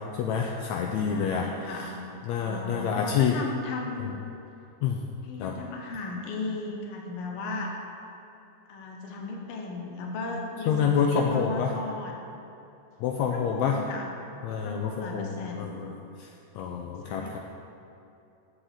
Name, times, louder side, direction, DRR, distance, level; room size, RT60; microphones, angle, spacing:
voice 1, 0.2-1.9 2.3-3.4 4.8-5.0 5.4-5.6 10.7-11.7 13.0-13.8 14.4-16.3 16.6-17.4, left 7 dB, 80° left, 2 dB, 1.7 m, -28 dB
voice 2, 1.0-2.0 2.4-4.1 5.2-7.7 8.7-12.1 13.2-14.1 14.4-15.8 17.0-17.4, left 3 dB, 55° left, 1 dB, 1.7 m, -36 dB
7.8 x 6.4 x 7.4 m, 2.8 s
omnidirectional pair, 3.4 m